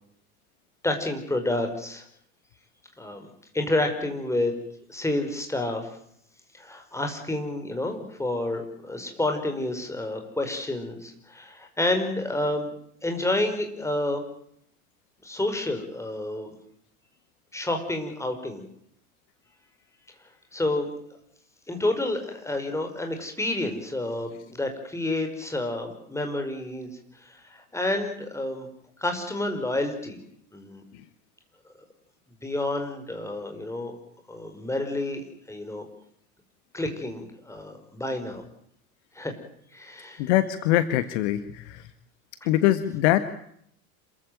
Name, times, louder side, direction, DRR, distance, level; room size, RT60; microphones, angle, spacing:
voice 1, 0.8-2.0 3.0-3.3 3.5-4.5 4.9-5.9 6.5-12.7 13.0-14.2 15.2-16.5 17.5-18.6 20.5-20.9 21.7-26.9 27.2-28.7 29.0-30.2 30.5-30.8 32.4-33.9 34.3-35.2 35.5-35.8 36.7-38.4 39.1-39.3 39.7-40.3, left 2 dB, 5° left, 4 dB, 5.1 m, -29 dB
voice 2, 40.2-41.9 42.4-43.2, left 13 dB, 50° left, 12 dB, 1.5 m, -23 dB
27.0 x 15.0 x 9.2 m, 0.69 s
figure-of-eight pair, 80°, 44 cm